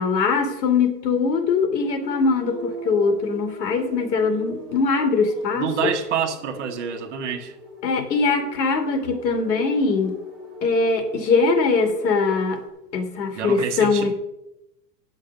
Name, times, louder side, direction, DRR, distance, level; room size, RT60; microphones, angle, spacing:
voice 1, 0.0-5.9 7.8-10.2 10.6-12.6 12.9-14.1, left 4 dB, 80° left, 2.5 m, -22 dB
sound 1, 2.0-12.7, left 1 dB, ahead, 1.3 m, -41 dB
voice 2, 5.5-7.6 13.4-14.1, right 8 dB, 45° right, 1.2 m, -27 dB
10.5 x 6.5 x 6.6 m
supercardioid pair, 180°, 50 cm